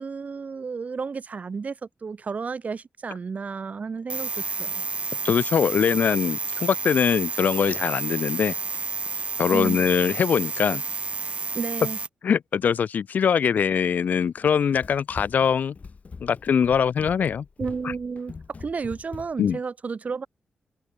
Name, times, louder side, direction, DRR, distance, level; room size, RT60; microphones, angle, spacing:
voice 1, 0.0-4.3 4.6-4.8 9.5-9.8 11.5-12.0 17.6-18.3 18.6-20.3, right 5 dB, 55° right, 1.1 m, -32 dB
sound 1, 4.1-12.1, right 4 dB, 40° right, 0.3 m, -30 dB
voice 2, 5.2-8.5 9.4-10.8 12.2-15.8 16.2-17.4 19.4-19.6, left 7 dB, 70° left, 0.4 m, -22 dB
Run, 14.4-19.6, left 4 dB, 50° left, 5.3 m, -42 dB
open air
supercardioid pair, 45°, 3 cm